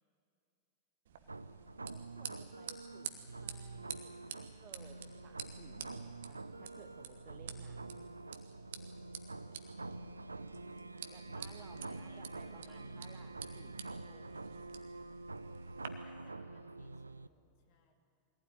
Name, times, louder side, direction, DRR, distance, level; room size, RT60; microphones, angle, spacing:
sound 1, 1.1-15.9, right 8 dB, 60° right, 1.3 m, -50 dB
sound 2, 1.3-17.3, right 3 dB, 80° right, 0.5 m, -47 dB
voice 1, 1.9-8.1 11.1-14.6, right 7 dB, 30° right, 7 dB, 1.5 m, -60 dB
voice 2, 9.3-10.1 11.7-13.2 16.0-17.9, left 3 dB, 45° left, 3 dB, 3.0 m, -69 dB
22.0 x 16.5 x 9.2 m, 2.5 s
figure-of-eight pair, 90°, 0 cm